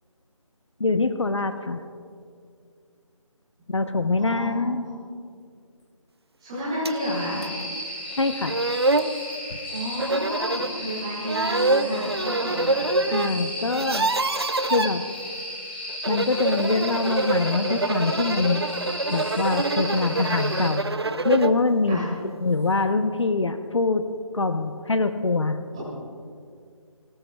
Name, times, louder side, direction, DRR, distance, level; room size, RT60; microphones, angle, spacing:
voice 1, 0.8-1.8 3.7-4.8 8.2-8.6 13.1-14.1 14.6-15.0 16.1-18.7 19.1-20.8 21.2-22.0 22.4-24.1 24.3-25.6, left 3 dB, 55° left, 9 dB, 0.8 m, -24 dB
voice 2, 4.2-5.0 6.4-7.4 9.7-12.9 21.9-22.1, equal, 10° right, -8 dB, 2.9 m, -31 dB
sound 1, 6.8-7.0 7.4-7.5 8.2-8.3 8.5-9.1 10.0-10.7 11.2-13.3 13.6-14.9 15.9-21.6, right 2 dB, 45° right, 0.5 m, -25 dB
sound 2, 7.0-20.7, left 1 dB, 20° left, 2.5 m, -35 dB
23.5 x 19.0 x 2.3 m, 2.3 s
figure-of-eight pair, 175°, 18 cm